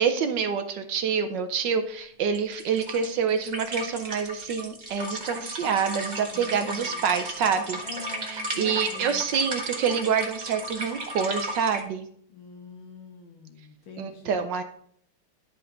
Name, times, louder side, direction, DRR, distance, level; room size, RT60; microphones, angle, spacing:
voice 1, 0.0-7.8 8.2-12.1 14.0-14.6, right 6 dB, 65° right, 7 dB, 1.3 m, -27 dB
sound 1, 2.3-11.8, right 1 dB, 25° right, 1.1 m, -35 dB
voice 2, 6.3-7.5 7.8-9.2 12.3-14.5, left 5 dB, 75° left, 3 dB, 2.3 m, -44 dB
11.0 x 5.5 x 3.8 m, 0.62 s
omnidirectional pair, 2.3 m